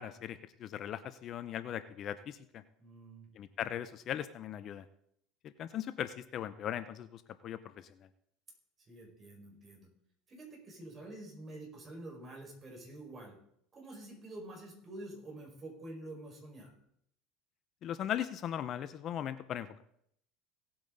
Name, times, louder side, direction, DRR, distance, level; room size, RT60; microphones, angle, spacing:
voice 1, 0.0-2.6 3.3-4.9 5.4-8.1 17.8-19.8, left 10 dB, 45° left, 12 dB, 0.6 m, -39 dB
voice 2, 2.8-3.3 8.9-9.9 10.3-13.4 13.7-16.7, right 1 dB, 25° right, -1 dB, 5.3 m, -48 dB
17.5 x 8.8 x 4.0 m, 0.71 s
supercardioid pair, 125°, 0 cm